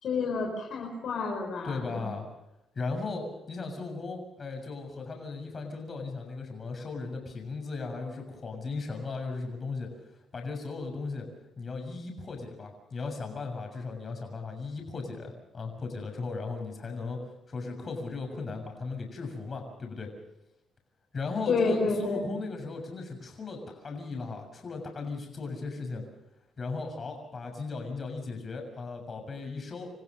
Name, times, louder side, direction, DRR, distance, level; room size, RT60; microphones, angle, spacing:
voice 1, 0.0-2.0 21.5-22.3, left 4 dB, 65° left, 1 dB, 4.9 m, -29 dB
voice 2, 1.6-2.3 2.8-9.9 10.3-11.3 11.6-17.2 17.5-20.1 21.1-26.0 26.6-29.9, left 3 dB, 40° left, 3 dB, 7.0 m, -37 dB
28.5 x 15.5 x 6.7 m, 0.87 s
cardioid pair, 90°, 0 cm